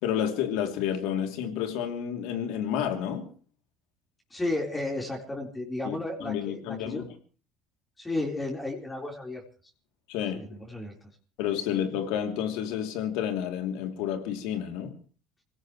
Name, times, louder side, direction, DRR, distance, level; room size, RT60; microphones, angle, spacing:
voice 1, 0.0-3.3 5.8-7.1 10.1-10.6 11.4-15.0, left 9 dB, 85° left, 5 dB, 3.0 m, -30 dB
voice 2, 4.3-7.0 8.0-9.4 10.3-10.9, left 2 dB, 15° left, 0 dB, 4.2 m, -33 dB
25.5 x 17.5 x 3.2 m, 0.38 s
supercardioid pair, 95°, 0 cm